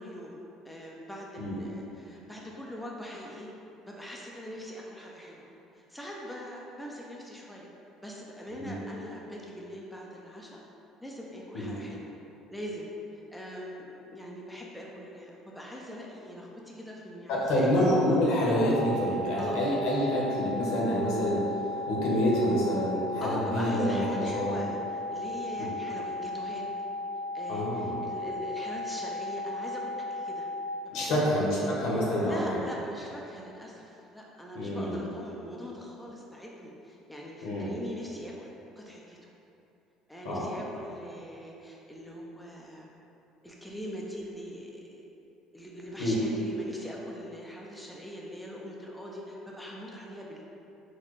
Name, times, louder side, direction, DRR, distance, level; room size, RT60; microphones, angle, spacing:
voice 1, 0.0-3.5 3.9-5.5 5.7-7.7 8.0-10.6 11.0-12.1 12.5-12.9 13.1-17.7 19.4-19.6 23.2-26.6 27.3-30.5 30.9-31.3 32.2-39.3 40.1-42.9 43.4-45.0 45.5-50.4, equal, 5° left, -3 dB, 0.3 m, -42 dB
voice 2, 17.3-21.6 21.9-24.6 25.6-25.7 27.5-28.0 30.9-32.4 34.5-35.0 37.4-37.7 40.2-40.4 46.0-46.1, equal, 75° left, -5 dB, 0.8 m, -27 dB
sound 1, 18.6-30.7, left 2 dB, 50° left, 0.6 m, -36 dB
4.0 x 2.2 x 3.1 m, 2.9 s
cardioid pair, 135°, 0 cm